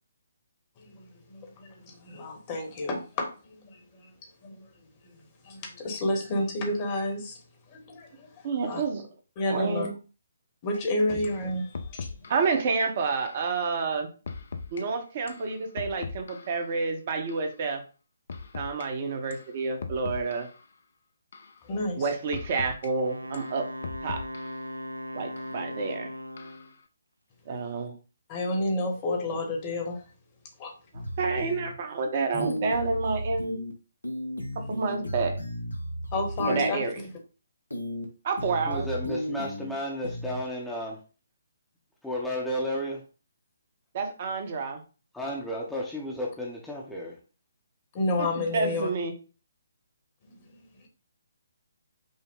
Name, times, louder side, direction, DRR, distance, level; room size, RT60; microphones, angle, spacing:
voice 1, 0.8-4.1 4.4-4.7 5.4-7.4 7.7-8.8 9.4-9.9 10.6-12.1 21.6-22.0 28.3-30.0 30.6-30.7 32.3-32.5 36.1-37.0 47.9-48.9 50.2-50.3, left 2 dB, 25° left, 1.0 m, -30 dB
voice 2, 8.4-9.1 9.5-10.0 12.3-14.1 14.7-17.8 18.5-20.5 22.0-23.7 24.0-24.2 25.1-26.1 27.5-27.9 31.2-33.6 34.7-35.3 36.4-37.0 38.2-38.9 43.9-44.8 48.2-49.1, right 4 dB, 35° right, 0.8 m, -29 dB
sound 1, 10.7-10.8 11.2-11.4 11.7-12.5 13.3-13.5 14.3-14.8 15.3-16.6 17.3-17.5 18.3-18.9 19.3-19.5 19.8-20.6 21.3-21.6 22.3-22.9 23.3-24.6 25.4-25.5 26.4-26.7, left 4 dB, 50° left, 0.5 m, -39 dB
Wind instrument woodwind instrument, 23.0-26.7, left 1 dB, 75° right, 0.4 m, -38 dB
sound 2, 30.9-31.7 32.4-33.7 34.0-36.7 37.7-38.0 38.4-39.7 40.0-40.4, equal, 80° left, 0.9 m, -34 dB
voice 3, 38.7-41.0 42.0-43.0 45.1-47.2, equal, 5° left, 0.7 m, -33 dB
5.3 x 2.1 x 3.7 m
figure-of-eight pair, 140°, 0 cm